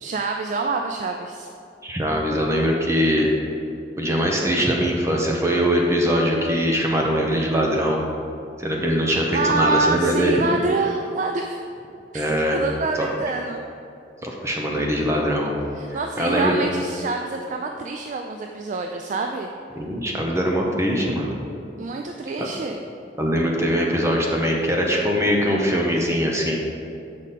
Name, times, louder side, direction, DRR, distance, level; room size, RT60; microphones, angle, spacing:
voice 1, 0.0-1.5 9.3-11.6 12.1-13.6 15.8-19.5 21.8-22.8, right 3 dB, 45° right, 3 dB, 0.3 m, -26 dB
voice 2, 1.8-3.3 4.0-8.0 8.6-10.3 12.1-12.6 13.0-13.1 14.2-15.5 15.9-16.5 19.8-21.3 22.4-22.5 23.2-26.6, equal, 15° right, -1 dB, 0.7 m, -22 dB
7.2 x 5.1 x 4.1 m, 2.6 s
head